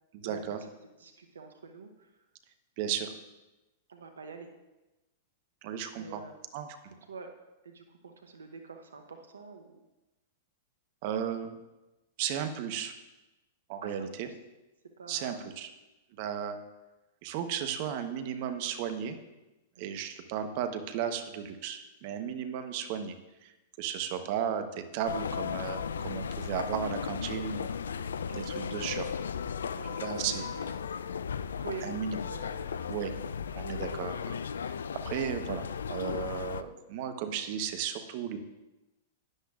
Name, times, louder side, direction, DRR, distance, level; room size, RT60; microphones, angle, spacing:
voice 1, 0.1-0.6 2.8-3.1 5.6-6.2 6.5-6.7 11.0-11.6 12.2-12.9 13.7-14.3 15.1-15.7 16.1-16.6 17.2-19.2 19.8-23.2 23.4-23.5 23.8-27.8 28.3-29.1 30.0-30.4 31.8-32.2 32.9-33.1 33.5-34.4 34.7-34.8 35.0-35.6 35.9-38.4, right 8 dB, 55° right, 8 dB, 1.0 m, -34 dB
voice 2, 1.0-2.2 3.9-4.5 6.0-6.4 7.1-7.3 7.6-9.8 13.8-14.4 15.0-15.5 19.8-20.0 29.7-30.0 30.3-31.0 31.6-31.9 32.2-33.0, right 5 dB, 85° right, 5 dB, 0.9 m, -46 dB
sound 1, 25.0-36.6, left 7 dB, 80° left, 0.4 m, -36 dB
12.0 x 10.0 x 2.5 m, 1.0 s
hypercardioid pair, 105°, 0 cm